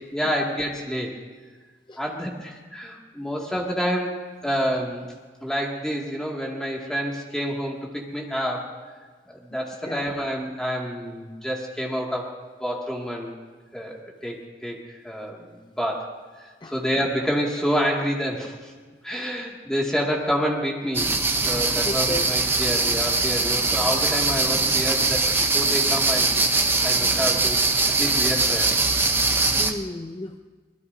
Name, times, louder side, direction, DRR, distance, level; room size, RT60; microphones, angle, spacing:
voice 1, 0.1-1.1 2.0-5.1 5.4-8.7 9.3-12.3 12.6-13.3 13.7-16.1 16.4-18.7 19.0-21.1 21.4-26.3 26.8-28.8, equal, 5° left, -2 dB, 2.1 m, -28 dB
sound 1, 20.9-29.7, right 3 dB, 15° right, 0.7 m, -22 dB
voice 2, 21.8-22.3 29.6-30.4, left 2 dB, 25° left, 5 dB, 0.5 m, -33 dB
25.5 x 20.0 x 2.7 m, 1.4 s
head